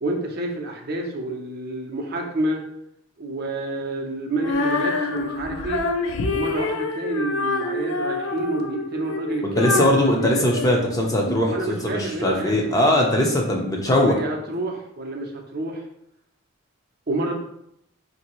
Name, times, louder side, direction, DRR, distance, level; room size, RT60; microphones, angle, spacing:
voice 1, 0.0-2.6 3.2-5.9 6.3-9.8 11.5-12.8 13.9-15.8 17.1-17.3, right 2 dB, 45° right, 1 dB, 0.6 m, -28 dB
Female singing, 4.4-11.4, left 3 dB, 65° left, 0.4 m, -27 dB
voice 2, 9.4-14.2, left 1 dB, 15° left, 0 dB, 0.5 m, -20 dB
4.7 x 2.6 x 3.0 m, 0.77 s
head